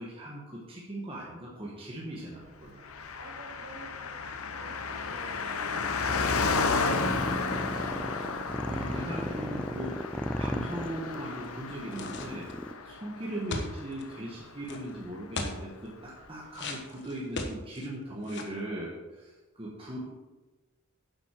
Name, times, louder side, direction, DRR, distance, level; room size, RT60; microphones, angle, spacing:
voice 1, 0.0-2.9 8.6-10.1 10.4-20.1, right 1 dB, 25° right, -4 dB, 1.4 m, -39 dB
Car passing by, 2.8-14.7 14.9-15.0, left 4 dB, 80° left, 0.8 m, -33 dB
voice 2, 3.2-4.1 4.5-5.8, right 1 dB, 60° right, -2 dB, 3.5 m, -50 dB
sound 1, 6.1-12.7, equal, 5° left, 0.3 m, -36 dB
sound 2, 11.9-12.6 13.5-14.0 14.6-14.8 15.3-15.6 16.5-17.9 18.2-18.6, left 3 dB, 55° left, 1.2 m, -37 dB
9.8 x 7.9 x 4.5 m, 1.1 s
head